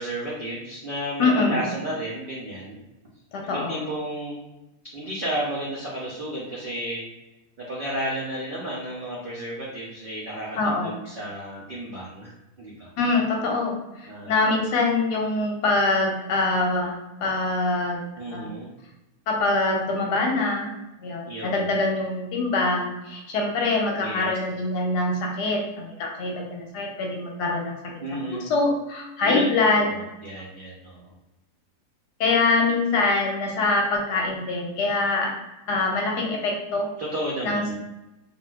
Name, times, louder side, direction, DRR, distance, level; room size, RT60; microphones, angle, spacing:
voice 1, 0.0-2.8 3.4-4.4 4.9-7.1 7.6-12.3 12.6-12.9 14.1-14.4 18.2-18.7 21.3-21.8 24.0-24.3 28.0-28.5 29.2-29.5 29.8-31.0 37.0-37.7, right 1 dB, 80° right, -5 dB, 0.4 m, -32 dB
voice 2, 1.2-1.6 3.3-3.9 10.6-11.0 13.0-18.0 18.3-18.5 19.3-20.7 21.0-27.8 28.3-29.9 32.2-35.3 35.7-36.9 37.4-37.7, left 3 dB, 85° left, 0 dB, 1.3 m, -24 dB
3.5 x 2.5 x 2.3 m, 0.99 s
omnidirectional pair, 1.7 m